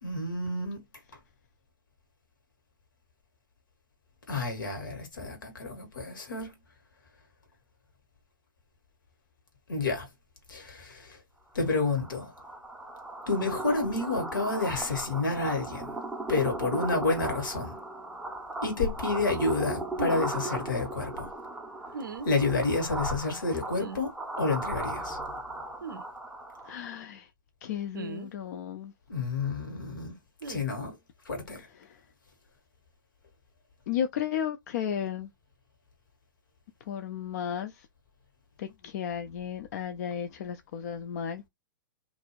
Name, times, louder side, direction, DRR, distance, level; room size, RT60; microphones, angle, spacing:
voice 1, 0.0-0.8 4.3-6.5 9.7-10.1 10.5-11.2 11.5-12.3 13.3-16.0 16.3-17.8 18.6-21.3 22.2-24.1 24.4-25.2 29.1-30.1 30.5-30.9 31.2-31.6, left 3 dB, 70° left, 1.3 m, -29 dB
sound 1, 11.6-26.9, right 2 dB, 5° right, 0.5 m, -37 dB
sound 2, 20.0-20.3 21.9-22.3 23.8-24.0 25.8-26.0 27.9-28.3 30.4-30.6, right 4 dB, 75° right, 0.4 m, -38 dB
voice 2, 26.6-27.3 27.6-28.9 31.7-32.0 33.9-35.3 36.9-37.9 38.6-41.5, left 9 dB, 50° left, 0.3 m, -34 dB
2.6 x 2.2 x 3.0 m
figure-of-eight pair, 105°, 11 cm